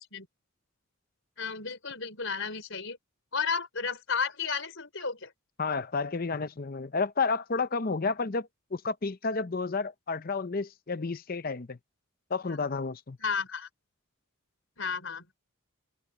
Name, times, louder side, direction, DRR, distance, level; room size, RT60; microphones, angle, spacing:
voice 1, 1.4-3.0 3.3-5.3 12.5-12.6 13.2-13.7 14.8-15.2, left 5 dB, 60° left, 4.8 m, -33 dB
voice 2, 5.6-11.8 12.3-13.2, left 4 dB, 40° left, 0.6 m, -31 dB
head